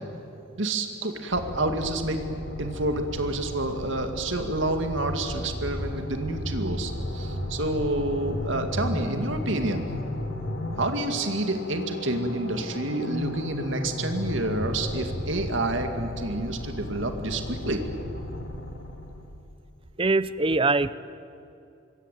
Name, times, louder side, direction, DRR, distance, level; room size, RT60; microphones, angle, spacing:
voice 1, 0.6-2.2 2.6-9.9 10.8-17.8, right 2 dB, 70° right, 6 dB, 2.2 m, -28 dB
sound 1, 1.3-19.4, left 1 dB, 70° left, 3.0 m, -34 dB
voice 2, 20.0-20.9, right 3 dB, 25° right, 16 dB, 0.6 m, -22 dB
26.0 x 21.5 x 9.2 m, 2.7 s
head